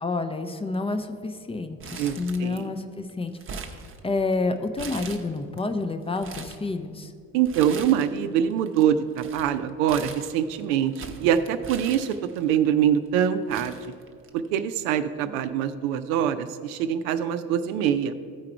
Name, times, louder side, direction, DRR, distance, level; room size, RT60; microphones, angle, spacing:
voice 1, 0.0-3.3 4.0-7.1, left 3 dB, 15° left, 8 dB, 0.5 m, -29 dB
Crumpling crinkling, 1.8-2.8 3.1-4.3 4.8-5.6 6.0-6.6 7.4-8.2 8.5-12.6 13.1-13.2 13.5-14.5 14.9-15.0 15.9-16.2, right 5 dB, 30° right, 0.8 m, -41 dB
voice 2, 2.0-2.7 7.3-13.8 14.3-18.1, right 9 dB, 60° right, 10 dB, 0.6 m, -24 dB
14.0 x 4.7 x 4.4 m, 2.3 s
figure-of-eight pair, 55°, 45 cm